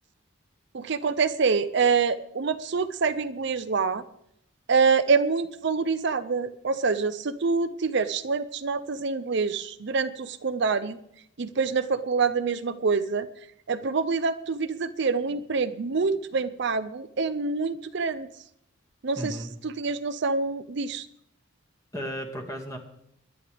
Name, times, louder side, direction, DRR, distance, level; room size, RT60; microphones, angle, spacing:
voice 1, 0.7-4.0 4.7-11.0 11.4-13.3 13.7-18.3 19.0-19.4 19.6-21.1, right 4 dB, 60° right, 11 dB, 0.6 m, -26 dB
voice 2, 19.2-19.5 21.9-22.8, equal, 15° left, 2 dB, 2.0 m, -34 dB
22.0 x 10.5 x 3.5 m, 0.75 s
head